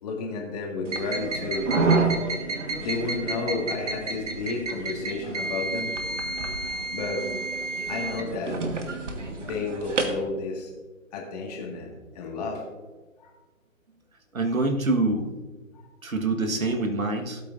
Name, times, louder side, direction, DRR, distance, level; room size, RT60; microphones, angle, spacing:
voice 1, 0.0-1.7 2.8-6.3 6.9-7.3 7.9-8.6 9.2-10.7 11.1-12.6 13.2-13.3, left 3 dB, 30° left, 1 dB, 1.8 m, -32 dB
sound 1, 0.9-10.2, right 3 dB, 60° right, 1.6 m, -29 dB
voice 2, 14.3-15.3 16.0-17.4, right 2 dB, 75° right, 5 dB, 1.7 m, -25 dB
17.0 x 8.3 x 2.6 m, 1.3 s
figure-of-eight pair, 140°, 41 cm